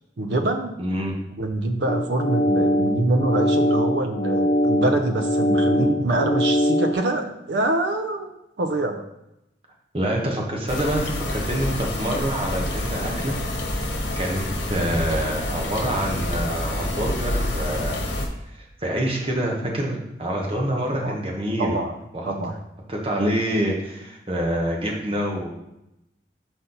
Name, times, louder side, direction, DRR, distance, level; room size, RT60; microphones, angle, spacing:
voice 1, 0.2-0.8 1.4-8.3 8.6-9.0 20.7-21.2 21.6-21.9 22.2-22.6, right 2 dB, 70° right, 5 dB, 0.6 m, -25 dB
voice 2, 0.8-1.1 9.9-13.4 13.7-13.8 14.2-18.0 18.6-21.8 22.1-22.3 22.9-25.5, right 1 dB, 30° right, -1 dB, 1.1 m, -26 dB
sound 1, 1.9-6.9, equal, 40° left, 0.4 m, -22 dB
sound 2, 10.7-18.3, left 1 dB, 85° left, 1.1 m, -27 dB
5.7 x 4.2 x 3.9 m, 0.86 s
head